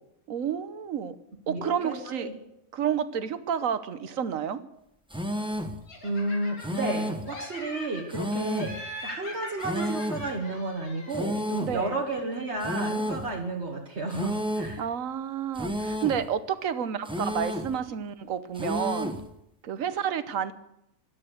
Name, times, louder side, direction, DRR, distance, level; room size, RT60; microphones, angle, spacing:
voice 1, 0.3-1.2 1.5-2.3 2.7-4.6 11.6-12.0 14.8-19.1 19.6-20.5, right 8 dB, 70° right, 13 dB, 1.3 m, -30 dB
voice 2, 1.5-2.3 6.0-14.9, right 2 dB, 50° right, 1 dB, 1.7 m, -32 dB
sound 1, 5.1-5.8 6.6-7.3 8.1-8.8 9.6-10.3 11.1-11.8 12.6-13.3 14.1-14.8 15.6-16.3 17.1-17.8 18.6-19.3, equal, 5° right, 1.0 m, -31 dB
Laughter, 5.9-7.0 7.3-8.2 8.6-11.3, left 1 dB, 90° left, 3.3 m, -42 dB
16.5 x 12.0 x 6.5 m, 0.81 s
omnidirectional pair, 1.5 m